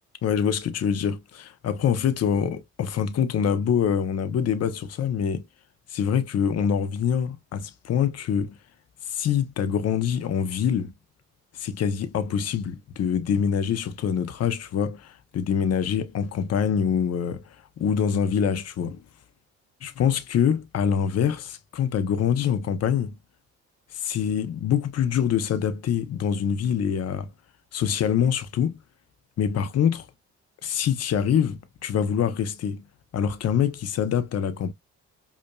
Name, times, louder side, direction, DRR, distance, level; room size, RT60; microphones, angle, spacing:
voice 1, 0.2-5.4 5.9-8.5 9.1-10.9 11.6-19.0 19.8-23.2 23.9-27.3 27.7-28.8 29.4-30.1 30.6-32.8 33.1-34.7, left 8 dB, 55° left, 0.8 m, -25 dB
5.3 x 2.7 x 2.2 m
cardioid pair, 90°, 30 cm